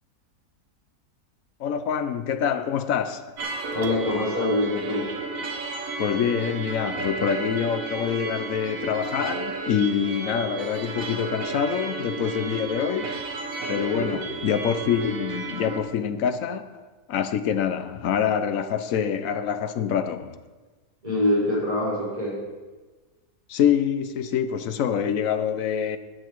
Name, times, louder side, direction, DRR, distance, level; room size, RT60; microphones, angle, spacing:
voice 1, 1.6-3.3 6.0-13.1 13.7-16.7 17.1-20.4 23.5-26.0, left 8 dB, 65° left, 1.0 m, -25 dB
sound 1, 3.4-15.8, right 3 dB, 60° right, 1.6 m, -33 dB
voice 2, 3.7-5.1 13.8-14.1 21.0-22.4, left 1 dB, 25° right, 4.6 m, -24 dB
14.5 x 8.8 x 4.6 m
omnidirectional pair, 1.7 m